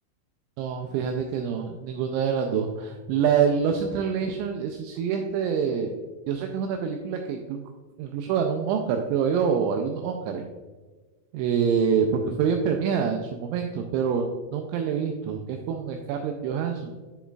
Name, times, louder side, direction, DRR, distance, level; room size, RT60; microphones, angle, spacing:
voice 1, 0.6-5.9 6.3-7.6 8.0-10.4 11.3-16.9, right 7 dB, 85° right, 4 dB, 2.7 m, -26 dB
9.4 x 7.1 x 2.4 m, 1.4 s
omnidirectional pair, 5.8 m